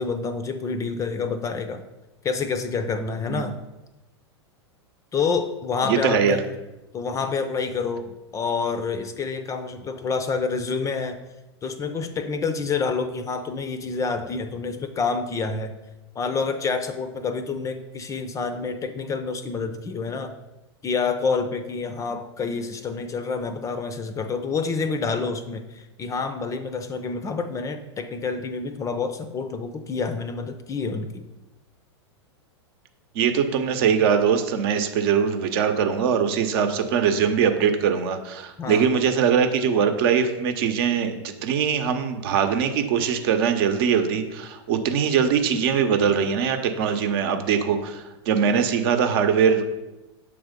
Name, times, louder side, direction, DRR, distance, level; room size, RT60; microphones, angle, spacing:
voice 1, 0.0-1.8 2.2-3.6 5.1-6.4 6.9-11.2 11.6-15.7 16.2-20.4 20.8-31.3 38.6-38.9, left 4 dB, 20° left, 10 dB, 0.5 m, -28 dB
voice 2, 5.8-6.4 33.1-49.7, right 7 dB, 55° right, 7 dB, 0.8 m, -22 dB
7.0 x 3.4 x 5.1 m, 1.0 s
hypercardioid pair, 100°, 15 cm